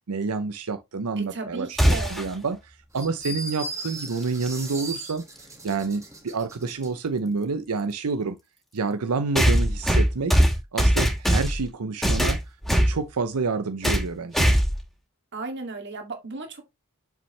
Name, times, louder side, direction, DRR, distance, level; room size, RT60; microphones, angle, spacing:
voice 1, 0.1-5.3 5.6-8.4 8.7-10.4 10.7-12.4 12.9-14.5, right 4 dB, 90° right, 0.7 m, -28 dB
voice 2, 1.2-2.4 15.3-16.7, right 3 dB, 55° right, 2.3 m, -35 dB
sound 1, 1.8-2.3 4.5-4.6 5.7-5.8 9.4-11.7 12.0-13.0 13.8-14.1 14.3-14.8, equal, ahead, 2.2 m, -20 dB
sound 2, 2.9-6.9, right 1 dB, 15° right, 1.6 m, -37 dB
7.0 x 6.1 x 3.2 m
head